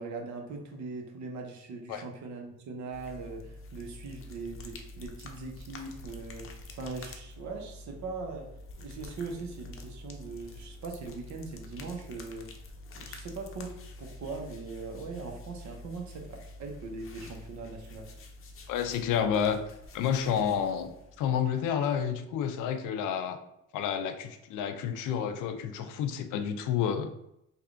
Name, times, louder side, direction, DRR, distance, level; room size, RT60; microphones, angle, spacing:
voice 1, 0.0-6.4 6.7-8.5 8.8-12.4 13.0-13.7 14.0-18.1, right 3 dB, 70° right, 2 dB, 0.9 m, -40 dB
sound 1, 2.9-21.8, left 2 dB, 45° left, 0.6 m, -47 dB
voice 2, 18.7-19.6 19.9-23.4 23.7-27.1, left 8 dB, 90° left, 8 dB, 0.5 m, -30 dB
3.4 x 2.3 x 3.7 m, 0.80 s
cardioid pair, 90°, 30 cm